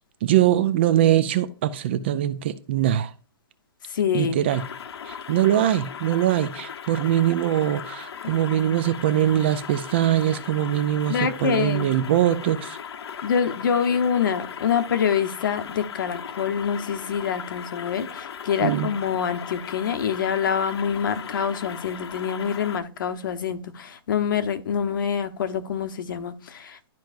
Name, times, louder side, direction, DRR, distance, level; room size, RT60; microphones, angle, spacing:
voice 1, 0.2-3.1 4.1-4.7 5.0-12.8 18.6-18.9, right 12 dB, 25° right, 0.3 m, -22 dB
voice 2, 3.9-4.4 11.1-11.9 13.2-26.8, left 7 dB, 55° left, 1.0 m, -26 dB
sound 1, 4.5-22.8, left 7 dB, 80° left, 0.7 m, -38 dB
12.0 x 4.5 x 2.5 m
hypercardioid pair, 170°, 13 cm